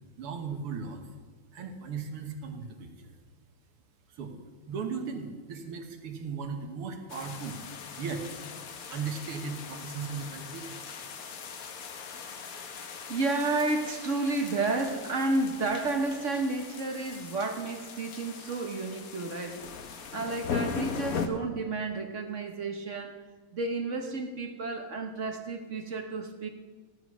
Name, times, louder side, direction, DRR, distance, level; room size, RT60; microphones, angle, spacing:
voice 1, 0.2-1.1 1.5-2.9 4.1-4.3 4.7-7.6 8.0-8.2 8.9-10.7, right 5 dB, 80° right, 2.3 m, -37 dB
sound 1, 7.1-21.3, left 6 dB, 50° left, 1.1 m, -40 dB
voice 2, 12.4-12.8 13.1-19.6 20.1-23.2 23.5-26.5, right 3 dB, 45° right, 1.1 m, -31 dB
14.5 x 11.5 x 6.1 m
omnidirectional pair, 2.4 m